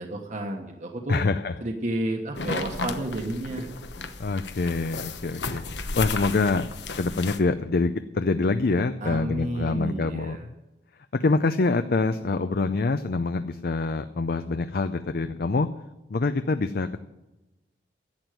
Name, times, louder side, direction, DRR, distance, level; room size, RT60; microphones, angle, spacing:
voice 1, 0.0-1.2 1.6-3.7 9.0-10.5, right 1 dB, 40° right, 2 dB, 1.2 m, -31 dB
voice 2, 1.1-1.5 4.2-5.6 6.0-6.7 7.0-10.4 11.1-15.7 16.1-17.0, left 3 dB, 55° left, 10 dB, 0.5 m, -25 dB
sound 1, 2.3-7.4, left 3 dB, 75° left, 1.1 m, -34 dB
11.5 x 8.0 x 9.1 m, 1.0 s
head